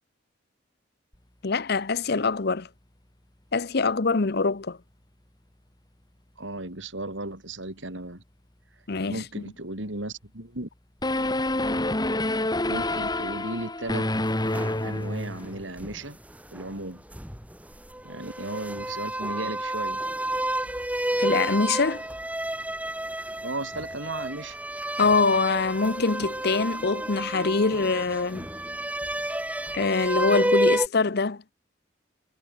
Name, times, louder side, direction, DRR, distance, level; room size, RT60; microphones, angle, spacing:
voice 1, 1.4-2.7 3.5-4.8 8.9-9.4 21.2-22.0 25.0-28.5 29.7-31.4, left 4 dB, 55° left, 0.8 m, -24 dB
voice 2, 6.4-8.2 9.1-10.7 12.6-14.1 14.8-16.2 16.5-17.0 18.0-20.0 23.4-24.6, right 2 dB, 75° right, 5.5 m, -35 dB
sound 1, 11.0-15.7, left 1 dB, 20° left, 2.4 m, -27 dB
sound 2, 14.3-16.8 17.1-30.9, right 1 dB, 10° right, 3.8 m, -30 dB
head